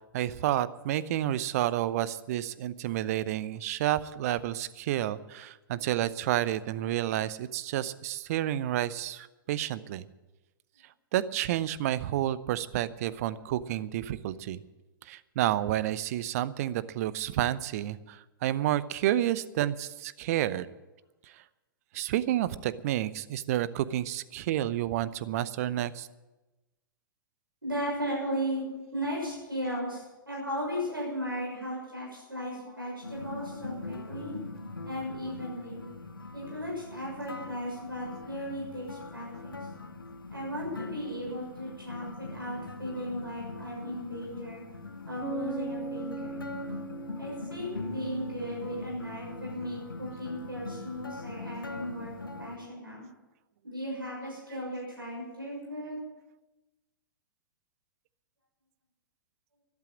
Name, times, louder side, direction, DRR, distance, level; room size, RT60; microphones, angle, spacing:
voice 1, 0.1-10.0 11.1-14.6 15.1-20.7 21.3-21.4 21.9-26.1, right 13 dB, 45° right, 17 dB, 0.7 m, -30 dB
voice 2, 27.6-34.3 34.8-35.9 36.3-39.6 40.3-44.6 45.0-46.4 47.2-52.1 52.4-53.1 53.6-56.0, equal, 85° right, -4 dB, 6.4 m, -36 dB
sound 1, 33.0-52.6, left 3 dB, 80° left, 1.2 m, -42 dB
Bass guitar, 45.2-48.9, right 4 dB, 15° right, 1.6 m, -40 dB
13.0 x 12.0 x 7.5 m, 1.1 s
figure-of-eight pair, 105°, 11 cm